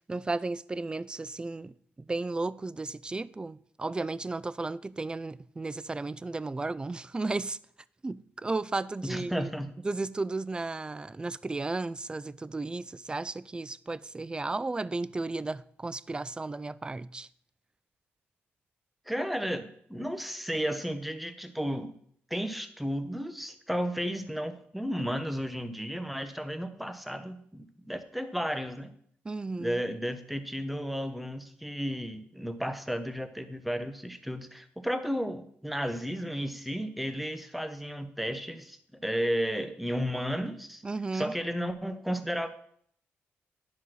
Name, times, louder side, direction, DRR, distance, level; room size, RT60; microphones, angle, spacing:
voice 1, 0.1-1.7 2.1-7.6 8.0-9.5 9.8-17.3 29.2-29.8 40.8-41.3, right 3 dB, 20° right, 0.3 m, -34 dB
voice 2, 9.0-9.7 19.1-21.9 22.3-28.9 29.6-40.8 41.1-42.5, equal, ahead, 1.0 m, -33 dB
10.5 x 4.1 x 6.2 m
cardioid pair, 80°, 5 cm